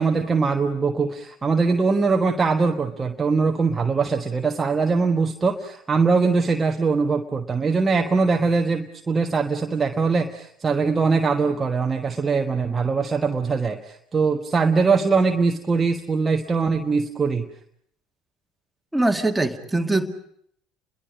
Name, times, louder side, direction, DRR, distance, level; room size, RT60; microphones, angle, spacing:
voice 1, 0.0-17.5, right 4 dB, 20° right, 3 dB, 1.3 m, -22 dB
voice 2, 18.9-20.1, right 2 dB, 5° right, 2 dB, 2.3 m, -22 dB
29.5 x 22.5 x 5.3 m, 0.69 s
figure-of-eight pair, 65°, 0 cm